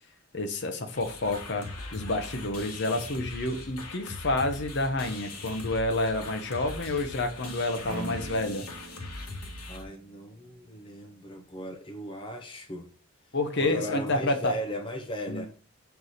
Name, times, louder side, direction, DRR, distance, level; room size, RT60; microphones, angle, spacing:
voice 1, 0.3-1.7 1.9-8.6 13.3-14.5 15.3-15.4, left 2 dB, 50° left, 0.9 m, -29 dB
sound 1, 0.9-9.8, left 2 dB, 90° left, 1.5 m, -41 dB
sound 2, 7.9-10.8, right 2 dB, 40° right, 1.0 m, -43 dB
voice 2, 9.7-12.9 13.2-15.5, equal, 20° left, 0.7 m, -37 dB
6.6 x 4.6 x 4.1 m
head